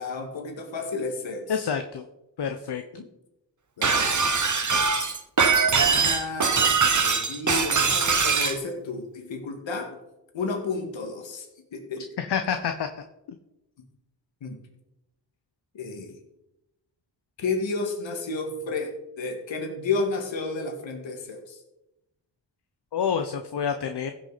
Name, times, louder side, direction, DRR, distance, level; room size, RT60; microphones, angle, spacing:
voice 1, 0.0-1.6 2.9-3.1 3.8-4.9 5.6-10.0 10.3-12.1 14.4-14.6 15.7-16.2 17.4-21.6, left 3 dB, 85° left, 3 dB, 2.1 m, -32 dB
voice 2, 1.5-2.0 2.4-2.8 12.2-13.0 22.9-24.1, left 7 dB, 60° left, 7 dB, 0.9 m, -28 dB
Shatter, 3.8-8.6, right 5 dB, 40° right, 1.3 m, -22 dB
15.5 x 6.6 x 4.2 m, 0.91 s
cardioid pair, 50°, 45 cm